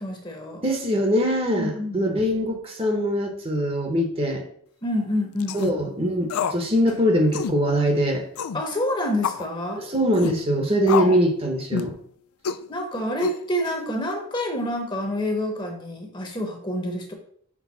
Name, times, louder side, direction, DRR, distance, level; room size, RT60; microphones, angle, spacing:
voice 1, 0.0-0.7 1.5-2.0 4.8-6.0 8.5-9.8 10.7-11.1 12.7-17.1, left 1 dB, 20° left, 3 dB, 1.0 m, -28 dB
voice 2, 0.6-4.4 5.5-8.2 9.8-11.9, equal, 25° right, 4 dB, 0.9 m, -22 dB
sound 1, 5.4-5.7 6.3-6.6 6.9-7.0 7.3-7.6 8.4-8.6 9.2-9.5 10.1-10.4 10.9-11.3 11.7-12.0 12.4-12.6 13.2-13.7, left 6 dB, 85° left, 0.4 m, -27 dB
6.2 x 3.4 x 5.7 m, 0.62 s
head